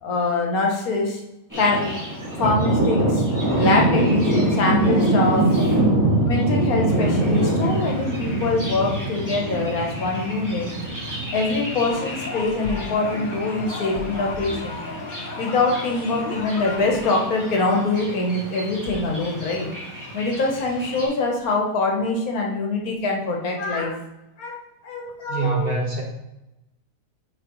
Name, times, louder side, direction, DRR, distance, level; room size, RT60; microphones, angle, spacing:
voice 1, 0.0-1.2 1.6-1.9 2.4-3.2 3.6-5.5 6.2-10.7 11.3-14.8 15.4-19.7 20.1-24.0 24.4-24.6 24.8-25.8, left 3 dB, 70° left, 0 dB, 1.5 m, -24 dB
Thunder, 1.5-21.1, right 1 dB, 10° right, 1.9 m, -25 dB
sound 1, 11.9-17.2, left 4 dB, 50° left, 0.6 m, -34 dB
voice 2, 25.3-26.0, right 4 dB, 45° right, -1 dB, 1.0 m, -24 dB
8.7 x 4.0 x 3.0 m, 0.92 s
omnidirectional pair, 1.6 m